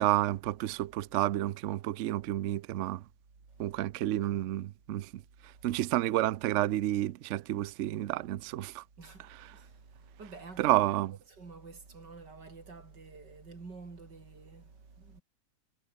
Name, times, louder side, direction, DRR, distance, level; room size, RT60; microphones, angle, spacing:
voice 1, 0.0-3.0 3.6-8.8 10.6-11.1, right 14 dB, 70° right, 0.7 m, -30 dB
voice 2, 9.0-10.8 11.3-15.2, right 4 dB, 90° right, 4.2 m, -49 dB
omnidirectional pair, 1.8 m